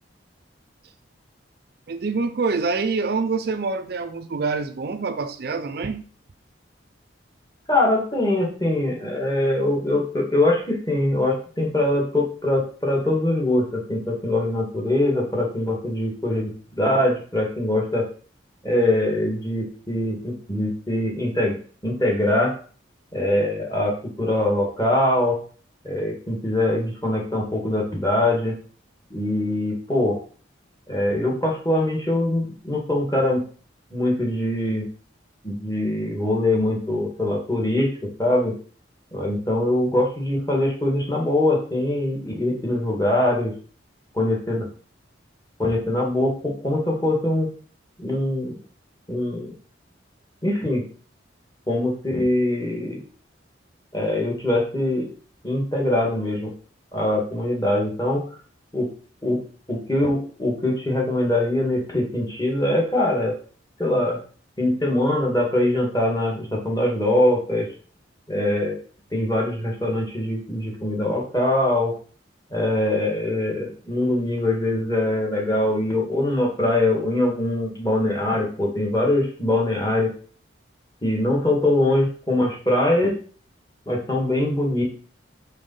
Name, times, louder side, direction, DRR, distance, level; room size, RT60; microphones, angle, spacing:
voice 1, 1.9-6.0, right 4 dB, 50° right, 0.4 m, -26 dB
voice 2, 7.7-18.1 18.6-21.5 21.8-22.5 23.1-25.4 25.8-28.6 29.1-30.2 30.9-33.4 33.9-34.9 35.4-37.9 38.2-38.6 39.1-43.5 44.1-44.7 45.6-47.5 48.0-48.5 49.1-49.5 50.4-50.8 51.7-53.0 53.9-55.1 55.4-56.5 56.9-58.2 58.7-58.9 59.2-59.4 59.7-63.4 63.8-64.2 64.6-67.7 68.3-68.8 69.1-71.9 72.5-80.1 81.0-83.1 83.9-84.8, left 1 dB, 20° left, 1.8 m, -23 dB
5.3 x 4.1 x 5.4 m
head